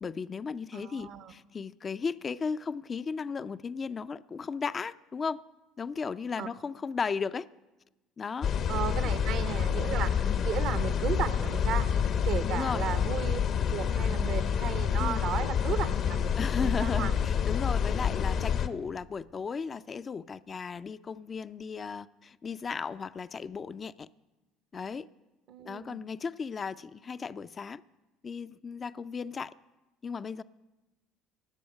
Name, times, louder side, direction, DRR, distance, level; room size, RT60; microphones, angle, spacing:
voice 1, 0.0-5.4 5.8-7.5 8.2-8.5 9.0-9.1 10.2-10.5 12.5-12.8 15.0-15.3 16.4-24.1 24.7-25.1 25.6-27.8 28.2-29.5 30.0-30.4, left 5 dB, 35° left, 0.4 m, -35 dB
voice 2, 0.7-1.3 6.4-6.5 8.7-11.9 12.3-13.4 13.7-17.1 25.5-26.0, right 9 dB, 60° right, 0.8 m, -35 dB
sound 1, 8.4-18.7, left 7 dB, 55° left, 0.8 m, -28 dB
18.0 x 7.8 x 6.5 m
hypercardioid pair, 65°, 0 cm